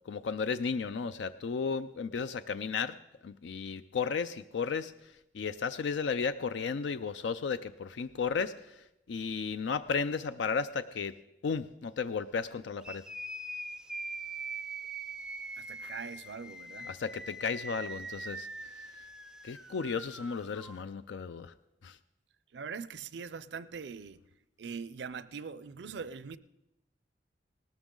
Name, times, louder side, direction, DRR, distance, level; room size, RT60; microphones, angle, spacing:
voice 1, 0.1-3.0 3.2-11.2 11.4-13.0 16.8-18.5 19.4-21.5 21.8-22.0, left 5 dB, 80° left, 0.4 m, -34 dB
sound 1, 12.8-20.8, right 2 dB, 5° right, 0.4 m, -42 dB
voice 2, 15.6-16.9 22.5-24.2 24.6-26.4, right 5 dB, 70° right, 0.5 m, -42 dB
18.5 x 13.0 x 3.8 m
head